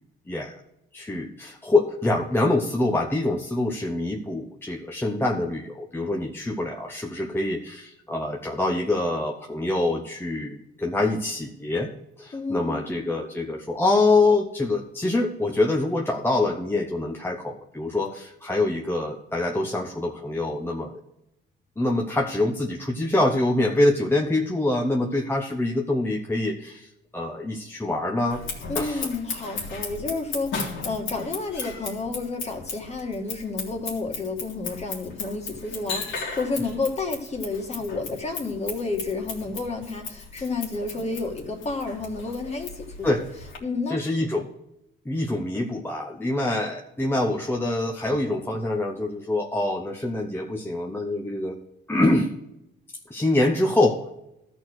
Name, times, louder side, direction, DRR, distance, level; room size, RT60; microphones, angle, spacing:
voice 1, 0.3-0.6 0.9-11.9 12.2-21.0 21.8-26.9 27.1-28.4 28.7-29.1 43.0-43.2 43.9-44.5 45.1-51.6 51.9-52.3 53.1-54.1, left 2 dB, 10° left, 1 dB, 1.0 m, -25 dB
voice 2, 12.3-12.8 28.7-43.1 43.6-44.1, left 3 dB, 35° left, 2 dB, 2.0 m, -30 dB
Scissors, 28.3-43.6, left 4 dB, 80° left, 2.3 m, -36 dB
13.0 x 4.4 x 6.2 m, 0.84 s
cardioid pair, 90°, 20 cm